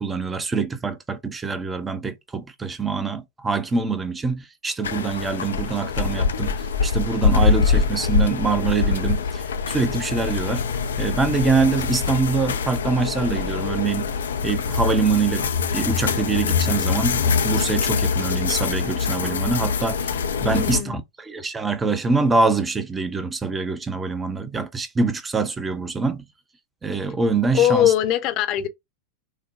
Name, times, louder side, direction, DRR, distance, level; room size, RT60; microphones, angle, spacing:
voice 1, 0.0-10.7 11.0-14.1 14.4-26.3 26.8-27.9, right 4 dB, 15° right, 0.7 m, -24 dB
sound 1, 4.8-20.8, left 5 dB, 65° left, 0.5 m, -24 dB
voice 2, 20.5-21.0 27.5-28.7, left 11 dB, 40° left, 0.8 m, -21 dB
6.5 x 2.2 x 2.5 m
figure-of-eight pair, 90°, 0 cm